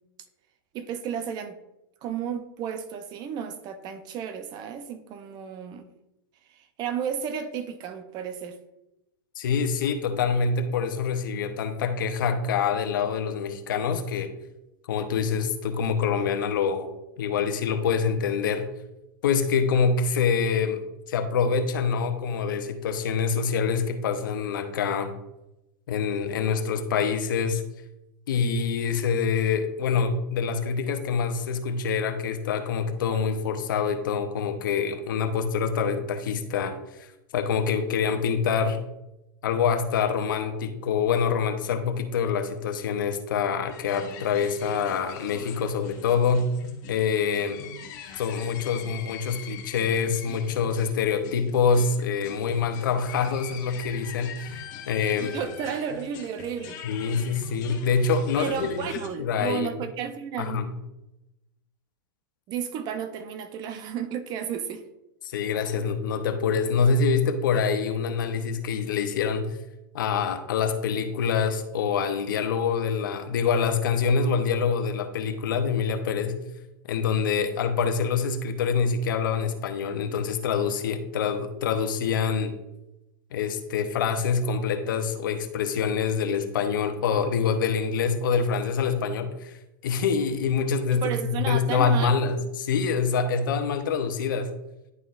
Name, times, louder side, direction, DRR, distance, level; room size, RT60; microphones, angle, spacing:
voice 1, 0.7-1.6 2.0-5.9 6.5-8.6 55.3-56.8 58.4-60.6 62.5-64.8 90.9-92.1, right 8 dB, 40° right, 0.7 m, -33 dB
voice 2, 9.4-14.3 14.9-16.9 17.2-18.7 19.2-20.8 21.1-25.1 25.9-27.6 28.3-37.1 37.3-38.8 39.4-46.5 46.9-47.6 48.2-55.3 56.8-59.7 60.4-60.7 65.2-69.6 69.9-76.4 76.9-82.5 83.3-94.5, left 6 dB, 70° left, 0.9 m, -25 dB
sound 1, 43.7-59.1, left 5 dB, 55° left, 1.3 m, -42 dB
10.5 x 3.9 x 2.5 m
hypercardioid pair, 115°, 11 cm